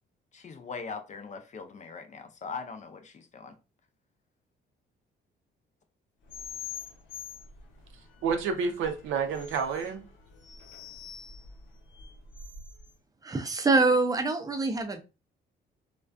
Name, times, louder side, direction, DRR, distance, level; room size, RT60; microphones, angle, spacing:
voice 1, 0.3-3.5, left 5 dB, 35° left, 0.4 m, -41 dB
sound 1, 6.3-12.9, left 6 dB, 75° left, 0.8 m, -45 dB
voice 2, 7.9-10.1, right 5 dB, 85° right, 0.5 m, -30 dB
voice 3, 13.2-15.0, right 3 dB, 20° right, 0.4 m, -25 dB
2.3 x 2.2 x 2.4 m
cardioid pair, 90°, 20 cm